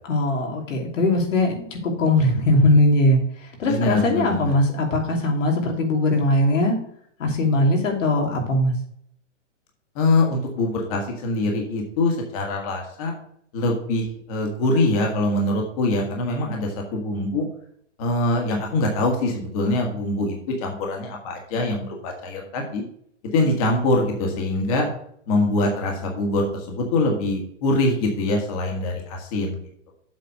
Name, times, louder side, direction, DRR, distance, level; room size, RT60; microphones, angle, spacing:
voice 1, 0.1-6.8 7.2-8.7, left 1 dB, 85° left, 1 dB, 2.9 m, -20 dB
voice 2, 3.7-4.5 9.9-13.1 13.5-17.5 18.0-22.8 23.2-24.9 25.3-29.6, left 2 dB, 30° left, 1 dB, 1.6 m, -23 dB
7.7 x 4.9 x 6.4 m, 0.66 s
hypercardioid pair, 170°, 37 cm